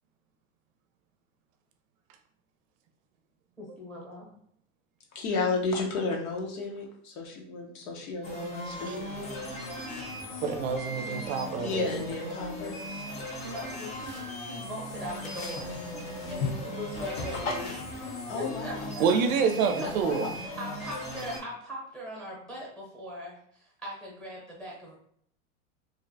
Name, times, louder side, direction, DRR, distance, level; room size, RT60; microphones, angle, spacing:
voice 1, 3.6-4.4 13.4-17.9 18.3-19.1 19.8-20.1 20.6-24.9, equal, ahead, 0.8 m, -40 dB
voice 2, 5.1-9.4 11.6-12.7 18.3-18.9 19.8-20.3, left 3 dB, 90° left, 0.8 m, -33 dB
sound 1, 8.2-21.4, left 1 dB, 20° left, 0.3 m, -38 dB
voice 3, 10.4-12.0 19.0-20.3, right 6 dB, 75° right, 0.5 m, -27 dB
sound 2, 12.8-20.4, left 4 dB, 50° left, 0.7 m, -41 dB
2.5 x 2.1 x 2.6 m
supercardioid pair, 135°, 41 cm